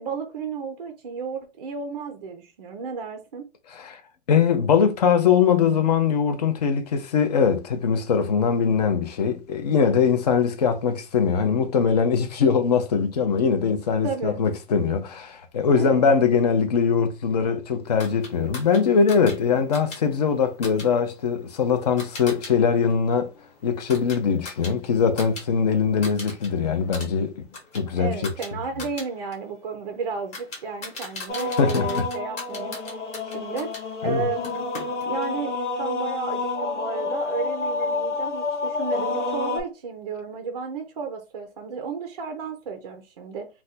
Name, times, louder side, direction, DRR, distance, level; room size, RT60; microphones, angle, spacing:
voice 1, 0.0-3.4 14.0-14.4 15.8-16.0 28.0-32.8 33.3-33.7 34.0-34.7 35.1-43.5, right 5 dB, 35° right, 0.5 m, -33 dB
voice 2, 4.3-23.3 23.6-27.5 27.7-28.3 31.6-32.1 34.0-34.2, left 6 dB, 35° left, 0.5 m, -22 dB
sound 1, 18.0-22.5 22.8-25.5 25.7-26.5 26.8-33.8 34.4-35.3, left 3 dB, 20° left, 1.0 m, -40 dB
sound 2, 31.3-39.6, left 3 dB, 85° left, 1.2 m, -29 dB
2.5 x 2.2 x 4.0 m
hypercardioid pair, 160°, 35 cm